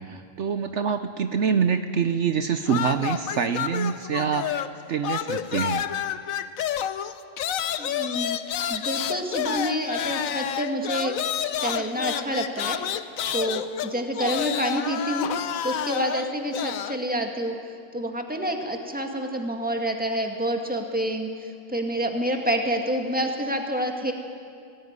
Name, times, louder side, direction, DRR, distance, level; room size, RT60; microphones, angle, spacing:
voice 1, 0.0-5.8, right 6 dB, 65° right, 9 dB, 1.0 m, -26 dB
sound 1, 2.7-4.8 5.0-17.0, left 9 dB, 85° left, 1.2 m, -29 dB
voice 2, 7.7-8.4 8.7-11.2 11.6-12.8 13.3-15.3 15.6-24.1, equal, 5° right, 3 dB, 2.0 m, -28 dB
19.5 x 18.0 x 9.6 m, 2.4 s
omnidirectional pair, 1.4 m